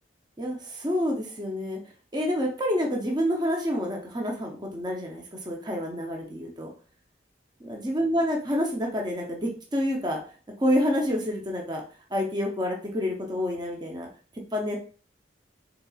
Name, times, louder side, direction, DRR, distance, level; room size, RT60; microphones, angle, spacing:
voice 1, 0.4-1.8 2.1-6.7 7.6-10.2 10.6-11.8 12.1-14.1 14.5-14.8, equal, 25° right, 0 dB, 0.6 m, -28 dB
4.1 x 4.0 x 2.3 m, 0.40 s
head